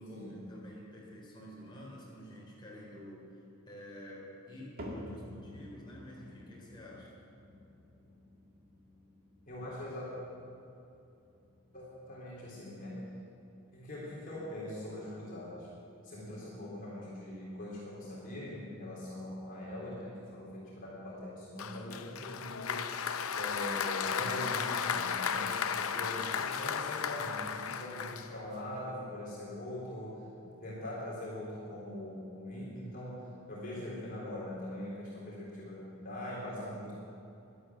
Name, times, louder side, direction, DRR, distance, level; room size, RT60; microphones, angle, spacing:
voice 1, 0.0-7.1, equal, 20° left, -5 dB, 3.9 m, -49 dB
sound 1, 4.8-21.1 21.4-21.9 22.5-22.6 23.5-23.6, left 1 dB, 45° right, 2.1 m, -53 dB
voice 2, 9.5-10.1 11.7-13.0 13.7-15.7 16.0-22.9 23.3-30.1 30.4-33.2 33.5-36.9, left 1 dB, 40° left, -6 dB, 3.5 m, -42 dB
Applause, 21.6-28.7, left 7 dB, 70° left, 0.7 m, -34 dB
12.5 x 11.5 x 8.5 m, 2.8 s
head